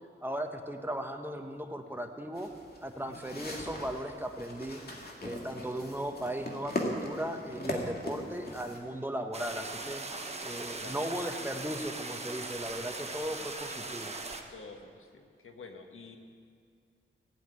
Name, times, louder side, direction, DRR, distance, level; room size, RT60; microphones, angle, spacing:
voice 1, 0.2-2.5 2.8-4.8 5.2-10.0 10.4-14.1, right 1 dB, 10° right, 5 dB, 1.0 m, -37 dB
sound 1, 2.3-8.8, left 1 dB, 50° left, 2.3 m, -39 dB
sound 2, 9.3-14.4, right 3 dB, 30° right, 1.1 m, -40 dB
voice 2, 14.5-16.2, left 4 dB, 85° left, 4 dB, 1.4 m, -49 dB
16.0 x 7.3 x 9.4 m, 2.2 s
wide cardioid pair, 100°, 21 cm